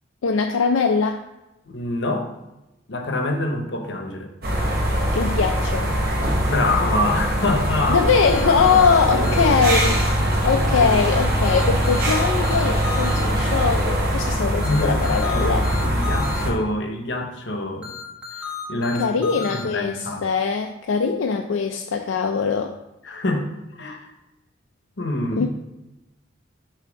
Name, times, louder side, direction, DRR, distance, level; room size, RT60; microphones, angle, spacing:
voice 1, 0.2-1.2 5.1-5.9 7.9-10.1 10.4-15.7 19.0-22.7 25.4-25.5, left 5 dB, 85° left, 3 dB, 0.4 m, -21 dB
voice 2, 1.7-2.3 2.9-4.3 6.4-8.0 9.1-9.4 10.5-10.9 14.6-17.9 18.3-20.3 23.0-23.5 23.8-24.1 25.0-25.5, left 1 dB, 65° left, 4 dB, 0.8 m, -26 dB
sound 1, 4.4-16.5, equal, 50° right, 1.0 m, -22 dB
sound 2, 8.2-10.0 11.4-13.2 14.6-16.4 17.8-19.6, left 6 dB, 5° right, 0.8 m, -34 dB
6.7 x 2.8 x 5.1 m, 0.97 s
head